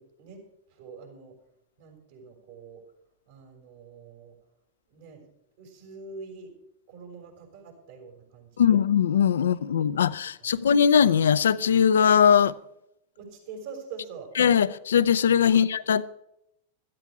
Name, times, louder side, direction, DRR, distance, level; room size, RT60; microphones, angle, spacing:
voice 1, 0.0-1.4 1.8-2.8 3.3-4.3 4.9-5.3 5.6-6.5 6.9-8.8 9.4-9.8 10.4-10.6 13.2-14.3 15.5-15.7, right 4 dB, 65° right, 6.4 m, -45 dB
voice 2, 8.6-12.5 14.4-16.0, left 8 dB, 80° left, 0.6 m, -20 dB
16.5 x 13.0 x 4.8 m
hypercardioid pair, 100°, 0 cm